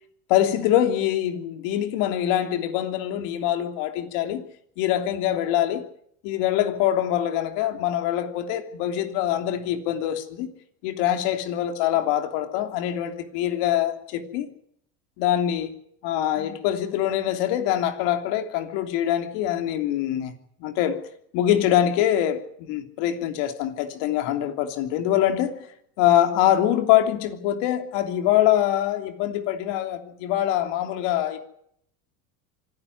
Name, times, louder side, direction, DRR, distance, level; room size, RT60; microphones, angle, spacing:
voice 1, 0.3-4.4 4.8-5.9 6.2-10.5 10.8-14.5 15.2-15.7 16.0-20.3 20.6-21.0 21.3-25.7 26.0-31.4, left 11 dB, 65° left, 3.2 m, -24 dB
25.5 x 13.0 x 9.7 m
hypercardioid pair, 85°, 45 cm